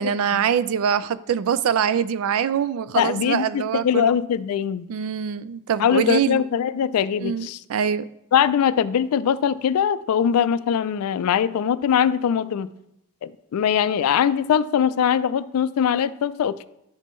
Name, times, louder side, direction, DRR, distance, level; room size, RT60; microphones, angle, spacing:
voice 1, 0.0-4.1 4.9-6.4 7.2-8.1, right 8 dB, 70° right, 0.3 m, -24 dB
voice 2, 3.0-4.9 5.8-7.6 8.3-12.7 13.2-16.6, left 8 dB, 85° left, 0.3 m, -21 dB
11.0 x 4.3 x 3.1 m
head